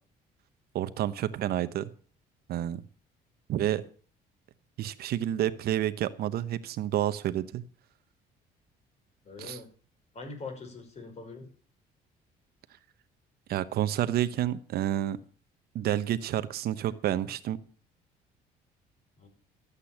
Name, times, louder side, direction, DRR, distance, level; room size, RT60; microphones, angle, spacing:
voice 1, 0.7-1.9 2.5-2.8 3.5-3.8 4.8-7.6 9.4-9.6 13.5-15.2 15.7-17.6, right 12 dB, 70° right, 13 dB, 0.9 m, -29 dB
voice 2, 9.2-9.7 10.1-11.5 19.2-19.3, left 4 dB, 40° left, 5 dB, 5.3 m, -42 dB
13.5 x 8.4 x 7.1 m, 0.42 s
cardioid pair, 110°, 17 cm